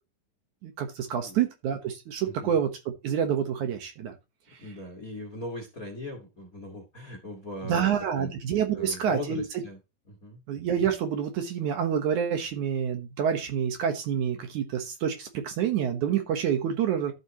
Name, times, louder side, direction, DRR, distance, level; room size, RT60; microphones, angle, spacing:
voice 1, 0.6-2.7 3.0-4.1 7.7-9.4 10.5-17.1, right 8 dB, 65° right, 6 dB, 2.4 m, -27 dB
voice 2, 4.6-8.3 8.7-9.8 10.1-10.4, left 1 dB, 35° left, 3 dB, 1.6 m, -39 dB
12.5 x 7.9 x 3.0 m, 0.26 s
omnidirectional pair, 4.2 m